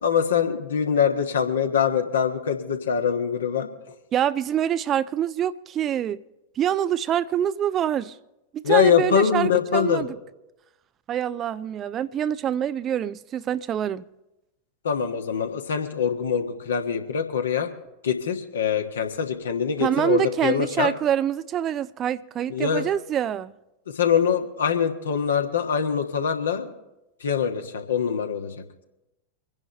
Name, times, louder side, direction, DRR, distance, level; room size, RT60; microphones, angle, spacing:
voice 1, 0.0-3.7 8.6-10.1 14.8-17.7 18.0-20.9 22.5-22.9 23.9-26.7 27.2-28.5, left 7 dB, 65° left, 1.4 m, -23 dB
voice 2, 4.1-6.2 6.6-8.2 8.5-10.1 11.1-14.0 19.8-23.5, right 10 dB, 30° right, 0.4 m, -25 dB
25.5 x 10.5 x 3.4 m
figure-of-eight pair, 90°, 0 cm